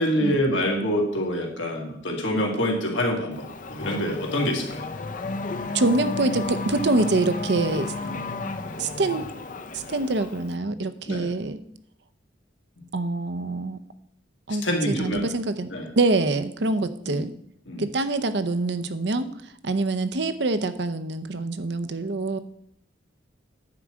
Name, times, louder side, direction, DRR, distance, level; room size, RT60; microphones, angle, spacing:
voice 1, 0.0-4.8 8.0-8.2 11.1-11.3 12.8-12.9 14.6-15.2 15.7-15.9 17.0-17.2 17.7-17.8, equal, 85° left, 0 dB, 2.4 m, -26 dB
Race car auto racing / Accelerating revving vroom, 3.3-10.5, left 3 dB, 45° left, 0.7 m, -33 dB
voice 2, 5.7-7.9 8.8-9.3 9.7-11.6 12.9-13.8 14.5-15.7 16.0-17.3 17.8-19.3 19.6-22.4, right 2 dB, 65° right, 10 dB, 0.7 m, -25 dB
9.9 x 4.8 x 7.4 m, 0.70 s
head